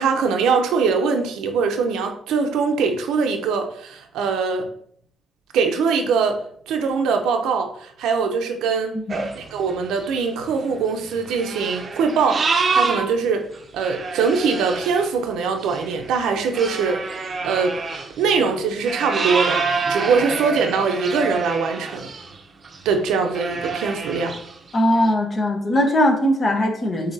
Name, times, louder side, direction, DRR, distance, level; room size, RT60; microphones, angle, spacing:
voice 1, 0.0-4.7 5.5-8.9 9.4-13.5 13.7-17.0 17.4-17.8 18.2-22.1 22.8-24.3, right 5 dB, 85° right, 5 dB, 0.6 m, -22 dB
sound 1, 9.1-13.1 13.5-22.4 22.6-22.9 23.3-25.1, right 4 dB, 45° right, 0.6 m, -27 dB
voice 2, 24.7-27.1, left 1 dB, 35° left, 3 dB, 1.0 m, -20 dB
6.5 x 2.8 x 2.7 m, 0.64 s
cardioid pair, 90°, 0 cm